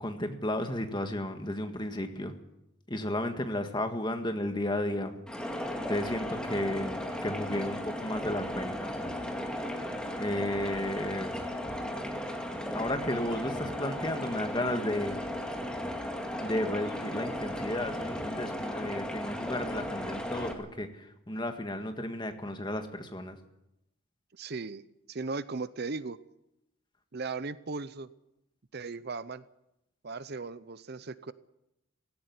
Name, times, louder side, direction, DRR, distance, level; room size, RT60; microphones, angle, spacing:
voice 1, 0.0-2.3 2.9-5.2 5.9-8.9 10.2-11.3 12.7-15.2 16.4-23.4, left 1 dB, 20° left, 6 dB, 1.8 m, -33 dB
sound 1, 5.3-20.5, equal, 5° left, 2.1 m, -36 dB
voice 2, 24.3-26.2 27.1-28.1 28.7-29.4 30.0-31.3, right 4 dB, 50° right, 15 dB, 0.7 m, -37 dB
17.0 x 17.0 x 9.7 m, 0.86 s
head